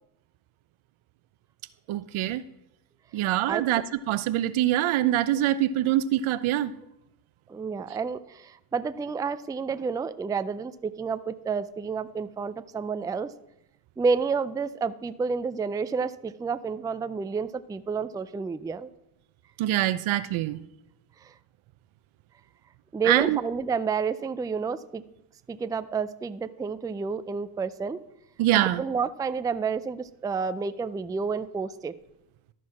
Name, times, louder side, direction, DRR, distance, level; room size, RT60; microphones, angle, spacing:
voice 1, 1.9-2.4 3.1-6.7 19.6-20.6 23.1-23.4 28.4-28.8, right 13 dB, 70° right, 0.7 m, -24 dB
voice 2, 7.5-13.3 14.0-18.9 21.2-21.3 22.9-25.0 25.5-28.0 28.5-31.9, right 5 dB, 10° right, 0.3 m, -30 dB
12.5 x 4.7 x 5.8 m
cardioid pair, 70°, 50 cm